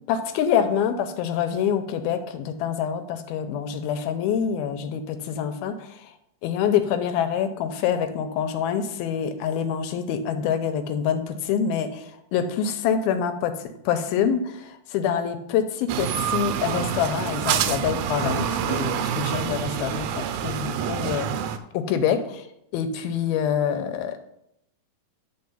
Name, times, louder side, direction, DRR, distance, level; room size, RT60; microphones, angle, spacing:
voice 1, 0.1-6.1 6.4-13.6 13.9-21.3 21.7-22.5 22.7-24.2, left 8 dB, 85° left, 8 dB, 2.7 m, -26 dB
sound 1, 15.9-21.6, right 9 dB, 90° right, 2.6 m, -27 dB
11.0 x 4.1 x 5.6 m, 0.77 s
omnidirectional pair, 4.3 m